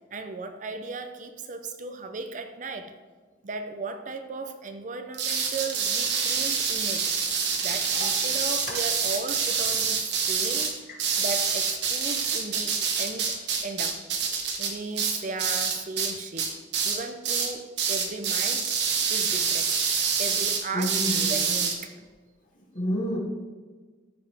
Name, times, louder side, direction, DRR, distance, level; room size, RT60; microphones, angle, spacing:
voice 1, 0.1-2.9 3.4-7.1 7.6-10.9 11.2-14.0 14.6-16.6 16.8-18.7 19.1-19.8 20.2-21.0 21.3-22.1, right 3 dB, 40° right, 7 dB, 0.6 m, -36 dB
sound 1, 5.1-16.1 16.4-17.0 17.2-17.5 17.8-21.7, right 6 dB, 65° right, 1.2 m, -26 dB
voice 2, 20.7-21.4 22.7-23.2, equal, 45° left, -4 dB, 2.4 m, -29 dB
14.0 x 5.2 x 3.4 m, 1.4 s
head